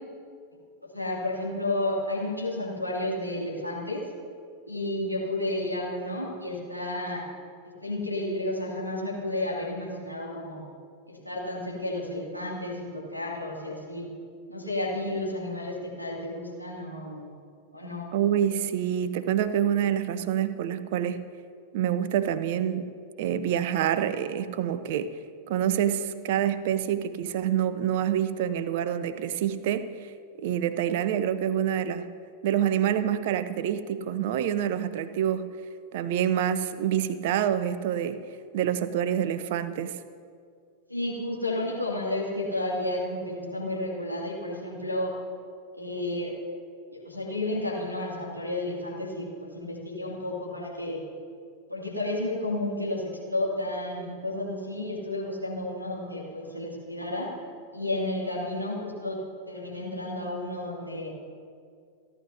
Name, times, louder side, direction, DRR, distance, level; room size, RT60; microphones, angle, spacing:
voice 1, 0.9-4.0 4.7-7.3 7.8-10.6 11.1-14.1 14.5-17.4 17.7-18.1 40.9-45.2 45.7-46.3 46.9-51.0 51.7-57.3 57.7-59.2 59.5-61.1, left 1 dB, 90° left, -4 dB, 2.4 m, -32 dB
voice 2, 18.1-21.2 21.7-22.9 23.2-25.2 25.5-29.9 30.4-32.1 32.4-35.5 35.9-38.2 38.5-40.0, right 10 dB, 50° right, 13 dB, 0.6 m, -27 dB
28.0 x 11.0 x 2.8 m, 2.2 s
figure-of-eight pair, 90°, 0 cm